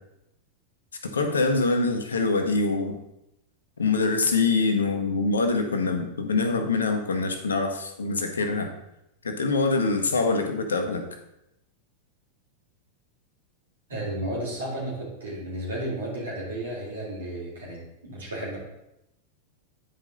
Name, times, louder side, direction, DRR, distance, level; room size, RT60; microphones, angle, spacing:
voice 1, 1.0-3.0 3.8-8.7 9.2-11.1, left 3 dB, 75° left, 6 dB, 1.0 m, -24 dB
voice 2, 13.9-18.6, right 1 dB, 70° right, -4 dB, 3.2 m, -33 dB
9.4 x 5.1 x 3.9 m, 0.87 s
figure-of-eight pair, 90°, 0 cm